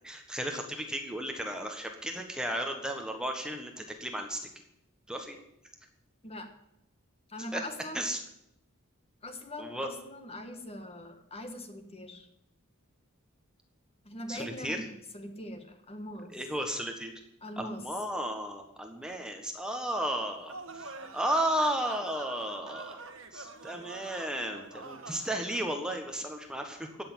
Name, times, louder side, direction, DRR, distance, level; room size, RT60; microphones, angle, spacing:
voice 1, 0.0-4.4 5.1-5.4 7.5-7.6 7.9-8.2 9.6-9.9 14.3-14.8 16.3-17.1 17.6-23.0 23.3-27.0, right 1 dB, 5° right, 3 dB, 1.4 m, -34 dB
voice 2, 7.3-8.0 9.2-12.3 14.1-16.3 17.4-17.8, left 1 dB, 30° left, 6 dB, 1.7 m, -42 dB
sound 1, 20.5-25.6, right 3 dB, 65° right, 1.6 m, -45 dB
15.5 x 6.8 x 9.4 m, 0.79 s
head